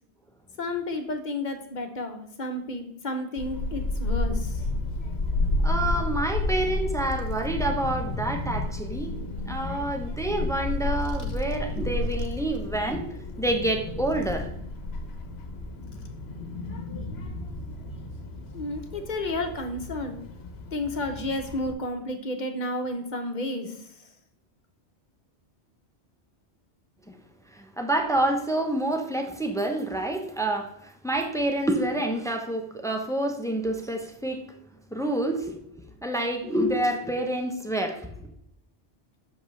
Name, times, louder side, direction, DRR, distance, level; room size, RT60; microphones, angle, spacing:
voice 1, 0.6-4.6 18.5-20.2 20.7-24.0, left 1 dB, 45° left, 5 dB, 1.0 m, -31 dB
Child speech kid speaking / Wind, 3.4-21.7, left 2 dB, 70° left, 1.1 m, -31 dB
voice 2, 5.6-9.1 9.5-13.0 13.4-14.5 27.1-27.2 27.5-34.4 34.9-35.6 36.0-38.1, right 1 dB, 5° left, 4 dB, 0.7 m, -28 dB
7.8 x 6.7 x 3.3 m, 0.76 s
omnidirectional pair, 1.1 m